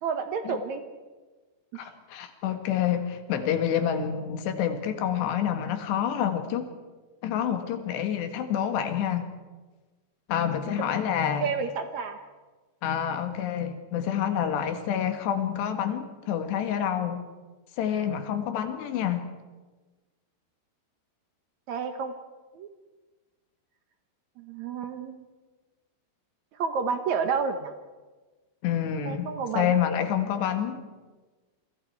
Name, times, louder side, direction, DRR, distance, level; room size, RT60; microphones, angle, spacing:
voice 1, 0.0-0.8 1.7-1.9 11.4-12.2 21.7-22.1 22.5-22.7 24.4-25.2 26.5-27.7 29.0-29.7, right 5 dB, 70° right, 7 dB, 1.7 m, -30 dB
voice 2, 1.8-6.7 7.2-9.3 10.3-11.5 12.8-17.3 17.8-19.3 28.6-30.8, left 9 dB, 85° left, 7 dB, 3.8 m, -28 dB
28.5 x 23.0 x 4.6 m, 1.3 s
omnidirectional pair, 4.8 m